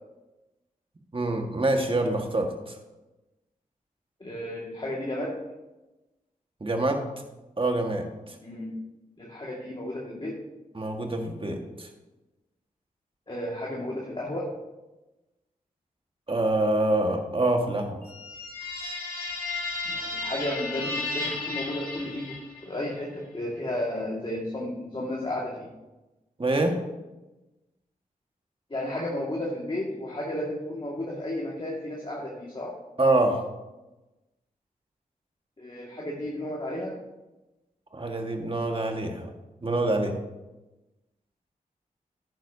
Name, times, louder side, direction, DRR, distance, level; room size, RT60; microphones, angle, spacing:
voice 1, 1.1-2.8 6.6-7.1 7.6-8.3 10.7-11.9 16.3-18.0 26.4-26.8 33.0-33.4 37.9-39.3 39.6-40.2, right 2 dB, 35° right, 3 dB, 1.7 m, -26 dB
voice 2, 4.2-5.4 8.4-8.7 9.2-10.4 13.3-14.5 19.9-22.3 22.6-25.7 28.7-32.8 35.6-36.9, left 1 dB, 35° left, -3 dB, 2.0 m, -33 dB
sound 1, 18.0-22.7, left 3 dB, 80° left, 2.7 m, -34 dB
10.5 x 9.4 x 2.8 m, 1.0 s
cardioid pair, 45°, 15 cm